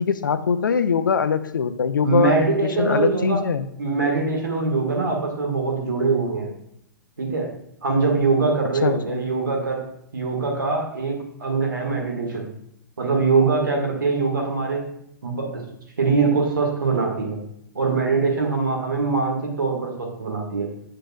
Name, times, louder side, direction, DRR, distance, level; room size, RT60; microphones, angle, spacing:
voice 1, 0.0-3.7 8.8-9.2, left 6 dB, 70° left, 13 dB, 0.5 m, -22 dB
voice 2, 2.0-3.4 3.8-6.5 7.2-7.5 7.8-9.8 10.1-12.5 13.0-14.9 15.2-15.6 16.0-17.4 17.8-20.7, right 4 dB, 70° right, 1 dB, 1.8 m, -23 dB
7.9 x 6.5 x 2.4 m, 0.76 s
figure-of-eight pair, 110°, 11 cm